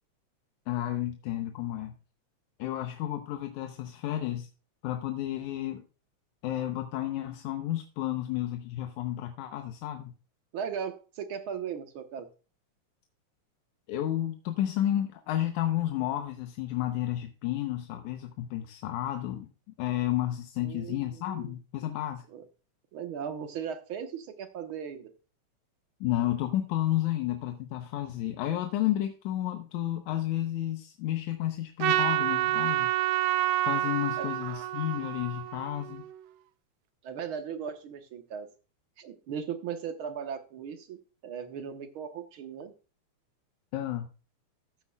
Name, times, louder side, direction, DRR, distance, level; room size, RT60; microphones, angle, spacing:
voice 1, 0.7-2.0 2.6-4.5 4.8-5.8 6.4-10.1 13.9-19.5 19.8-22.2 26.0-32.9 33.7-36.0 43.7-44.1, left 13 dB, 85° left, 6 dB, 2.3 m, -31 dB
voice 2, 10.5-12.3 20.6-21.5 22.3-22.4 22.9-25.1 34.2-34.3 37.0-38.5 39.0-41.0 41.2-42.7, right 7 dB, 60° right, 7 dB, 1.6 m, -37 dB
Trumpet, 31.8-36.2, right 15 dB, 80° right, 2.0 m, -28 dB
14.0 x 8.7 x 2.3 m, 0.34 s
omnidirectional pair, 3.3 m